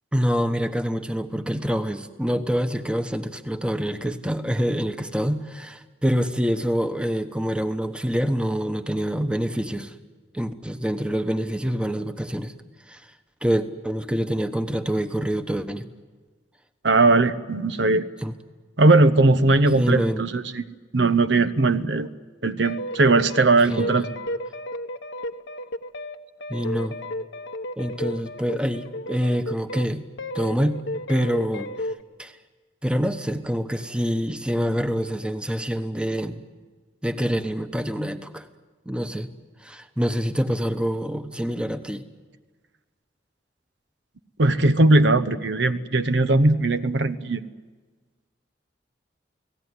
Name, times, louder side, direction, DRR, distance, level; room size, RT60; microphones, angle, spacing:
voice 1, 0.1-9.9 10.3-12.5 12.9-13.1 13.4-15.9 18.2-18.3 19.7-20.2 23.7-24.1 26.5-27.0 27.8-30.0 30.3-30.8 31.1-31.9 32.2-32.4 32.8-36.4 37.0-38.5 38.8-39.3 39.6-42.0, equal, 5° right, 8 dB, 1.1 m, -26 dB
voice 2, 16.8-18.0 18.8-20.6 20.9-22.1 22.4-24.1 44.4-47.4, right 2 dB, 75° right, 11 dB, 1.0 m, -19 dB
sound 1, 22.6-29.9 30.2-32.0, left 1 dB, 85° left, 1.1 m, -33 dB
29.5 x 18.0 x 9.8 m, 1.4 s
head